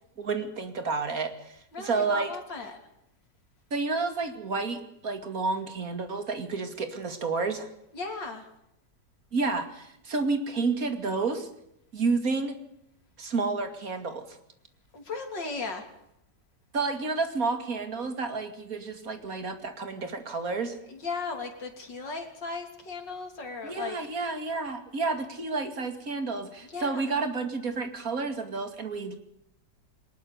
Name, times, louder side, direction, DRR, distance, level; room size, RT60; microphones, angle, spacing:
voice 1, 0.2-2.3 3.7-7.7 9.3-11.5 11.9-12.6 13.2-14.4 16.7-20.8 23.6-29.2, right 4 dB, 50° right, 8 dB, 2.8 m, -30 dB
voice 2, 1.7-2.8 7.9-8.5 14.9-15.9 20.9-24.0 26.6-27.1, left 4 dB, 85° left, 4 dB, 4.0 m, -36 dB
21.5 x 20.0 x 6.8 m, 0.82 s
omnidirectional pair, 1.9 m